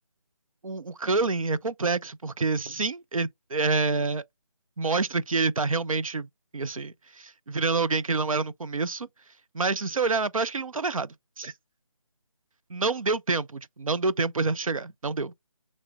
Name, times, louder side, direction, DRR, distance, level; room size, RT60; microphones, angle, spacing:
voice 1, 0.6-4.2 4.8-6.3 6.5-9.1 9.5-11.5 12.7-15.3, right 4 dB, 85° right, 0.5 m, -27 dB
6.9 x 3.0 x 2.2 m
figure-of-eight pair, 160°, 17 cm